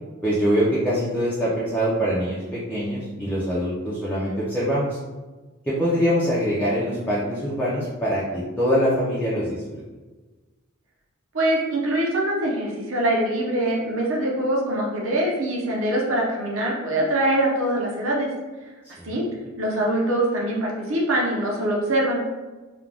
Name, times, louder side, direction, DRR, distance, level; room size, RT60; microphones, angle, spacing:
voice 1, 0.2-5.0 5.7-9.8 18.8-19.2, equal, 10° left, -8 dB, 0.4 m, -24 dB
voice 2, 11.3-18.3 19.0-19.2 19.6-22.2, right 1 dB, 70° right, -2 dB, 0.7 m, -23 dB
2.4 x 2.2 x 3.2 m, 1.2 s
head